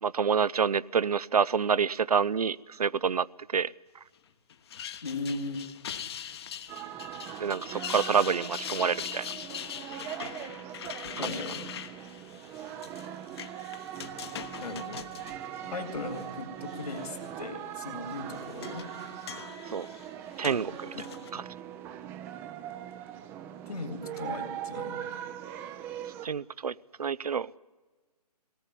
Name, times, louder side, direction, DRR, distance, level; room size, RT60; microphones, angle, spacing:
voice 1, 0.0-3.7 7.4-9.3 19.7-19.9 20.4-20.9 21.3-21.4 26.2-27.6, right 6 dB, 65° right, 20 dB, 0.6 m, -28 dB
sound 1, 4.5-16.3 16.7-17.3 18.1-21.3, left 9 dB, 40° left, 1.2 m, -42 dB
voice 2, 5.0-5.7 10.5-10.7 11.2-11.6 14.6-15.0 15.7-18.9 20.7-20.8 21.3-21.4 23.7-25.3, left 3 dB, 65° left, 4 dB, 3.5 m, -38 dB
sound 2, 6.7-26.3, right 10 dB, 10° right, 0.6 m, -41 dB
20.0 x 18.5 x 10.0 m, 1.3 s
figure-of-eight pair, 145°, 21 cm